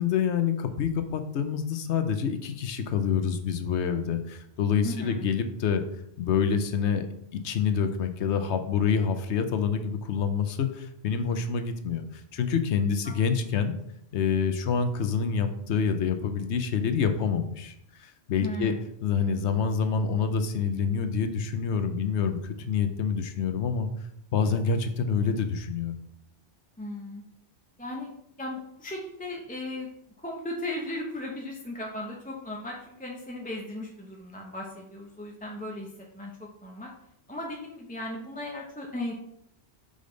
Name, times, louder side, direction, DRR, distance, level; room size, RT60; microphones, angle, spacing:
voice 1, 0.0-5.8 6.2-7.1 7.3-13.7 14.1-17.7 18.0-18.7 19.0-23.9 24.3-25.9, left 6 dB, 80° left, 8 dB, 1.0 m, -27 dB
voice 2, 4.8-5.2 13.0-13.1 18.4-18.7 26.8-27.2 27.8-28.1 28.4-29.9 30.2-36.9 37.3-39.1, left 1 dB, 10° left, -1 dB, 0.6 m, -36 dB
5.2 x 5.1 x 3.9 m, 0.76 s
omnidirectional pair, 1.2 m